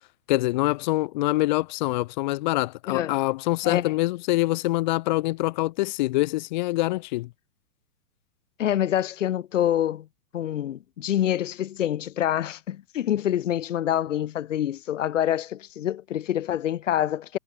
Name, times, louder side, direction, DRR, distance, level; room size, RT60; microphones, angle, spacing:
voice 1, 0.3-7.3, left 19 dB, 30° left, 2.2 m, -25 dB
voice 2, 8.6-10.1 10.3-17.4, left 11 dB, 50° left, 2.5 m, -26 dB
hypercardioid pair, 175°, 47 cm